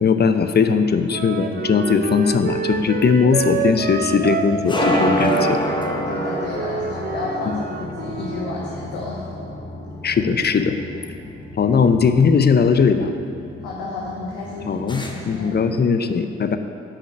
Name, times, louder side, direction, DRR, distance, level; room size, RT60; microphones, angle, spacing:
voice 1, 0.0-5.6 7.4-7.6 10.0-10.8 11.6-13.1 14.6-16.6, left 5 dB, 30° left, 8 dB, 0.6 m, -19 dB
Wind instrument woodwind instrument, 1.1-8.5, right 5 dB, 30° right, 0.6 m, -27 dB
sound 1, 1.7-15.7, left 1 dB, 15° left, 0.9 m, -29 dB
voice 2, 6.1-9.3 13.6-15.6, left 3 dB, 90° left, -4 dB, 0.8 m, -31 dB
5.6 x 5.0 x 6.7 m, 2.6 s
hypercardioid pair, 45°, 32 cm